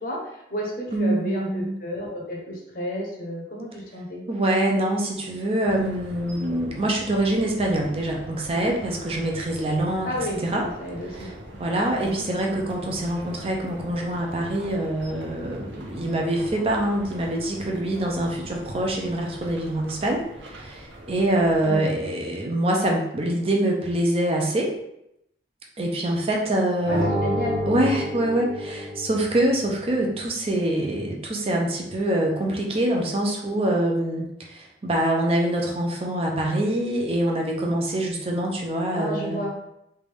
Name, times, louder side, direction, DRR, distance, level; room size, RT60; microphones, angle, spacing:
voice 1, 0.0-4.2 10.0-11.3 12.0-12.2 21.6-21.8 26.9-27.6 38.9-39.5, equal, 50° left, -1 dB, 0.8 m, -31 dB
voice 2, 0.9-1.7 4.3-10.2 10.4-10.7 11.2-11.3 11.6-24.7 25.8-27.1 27.7-39.4, right 1 dB, 30° right, -1 dB, 0.5 m, -25 dB
sound 1, 5.6-21.8, right 1 dB, 90° right, 0.7 m, -42 dB
sound 2, 26.8-29.5, equal, 60° right, 1.0 m, -28 dB
3.3 x 2.5 x 3.3 m, 0.81 s
head